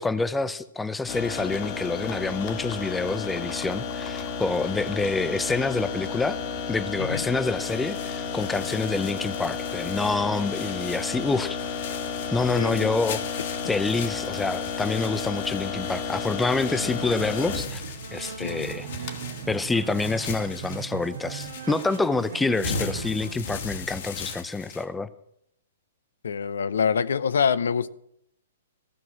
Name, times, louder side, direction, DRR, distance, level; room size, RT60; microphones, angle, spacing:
voice 1, 0.0-6.4 6.7-11.6 12.3-13.2 13.6-17.8 18.1-18.9 19.5-25.1, left 3 dB, 5° left, 0.5 m, -27 dB
sound 1, 1.1-20.7, left 6 dB, 40° left, 1.7 m, -33 dB
sound 2, 7.5-24.8, left 4 dB, 60° left, 1.8 m, -39 dB
voice 2, 12.6-12.9 18.4-18.7 26.2-27.9, left 6 dB, 85° left, 0.6 m, -25 dB
sound 3, 16.6-23.3, right 7 dB, 70° right, 1.3 m, -38 dB
15.5 x 6.2 x 7.3 m
hypercardioid pair, 145°, 0 cm